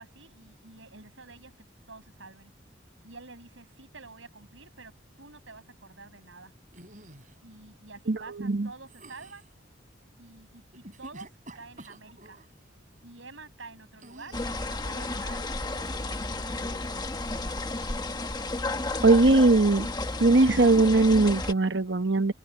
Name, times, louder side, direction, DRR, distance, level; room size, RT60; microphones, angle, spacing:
voice 1, 0.0-1.5 1.9-2.5 3.0-6.5 7.4-9.5 10.2-12.4 13.0-17.0, right 3 dB, 85° right, 7.5 m, -49 dB
sound 1, 6.7-7.4 8.8-9.5 10.7-12.5 14.0-14.7 16.5-17.0 17.3-17.7 19.1-19.5, right 1 dB, 40° right, 7.3 m, -49 dB
voice 2, 8.1-8.7 19.0-19.9 20.2-22.3, right 2 dB, 65° right, 1.1 m, -20 dB
sound 2, 14.3-21.5, left 2 dB, 20° left, 1.2 m, -32 dB
head